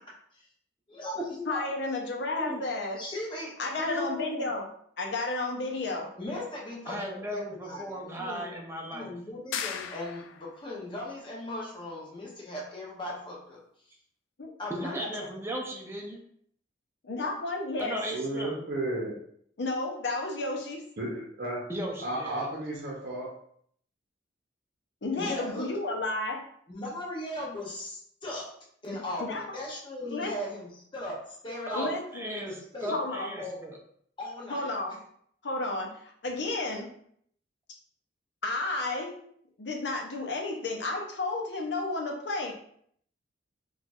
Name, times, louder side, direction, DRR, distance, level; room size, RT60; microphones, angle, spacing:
voice 1, 0.9-1.6 2.9-3.6 6.2-8.6 8.9-13.6 14.6-15.3 25.2-25.7 26.7-28.5 28.8-32.0 32.3-33.0 33.4-33.6 34.2-34.7, left 1 dB, 25° left, -3 dB, 0.7 m, -38 dB
voice 2, 1.5-3.0 3.6-4.7 5.0-6.1 14.4-14.5 17.0-18.0 19.6-20.8 25.0-26.4 28.9-29.4 30.1-30.3 31.7-32.2 32.9-33.3 34.5-34.9 35.4-36.9 38.4-39.1 39.6-42.5, left 2 dB, 65° left, 1 dB, 0.7 m, -32 dB
voice 3, 3.8-4.5 6.9-9.1 14.7-16.2 17.8-18.6 21.7-22.5 31.7-31.9 32.1-32.5 32.8-33.8, equal, 15° right, -1 dB, 0.5 m, -36 dB
sound 1, 9.5-10.6, left 8 dB, 90° left, 0.3 m, -36 dB
voice 4, 18.1-19.1 21.0-21.6 22.0-23.3, right 1 dB, 55° right, -4 dB, 0.7 m, -33 dB
4.3 x 2.4 x 2.4 m, 0.64 s
head